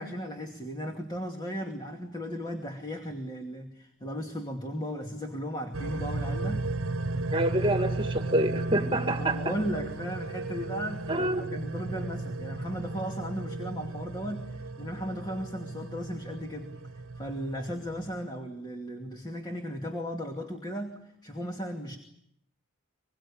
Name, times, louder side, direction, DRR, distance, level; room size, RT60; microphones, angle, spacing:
voice 1, 0.0-6.7 9.2-22.0, equal, 20° left, 2 dB, 2.5 m, -36 dB
sound 1, 5.7-18.2, right 2 dB, 75° right, 1.2 m, -35 dB
voice 2, 7.3-9.4 11.1-11.4, right 1 dB, 25° right, 5 dB, 2.2 m, -27 dB
26.0 x 22.5 x 8.6 m, 0.74 s
head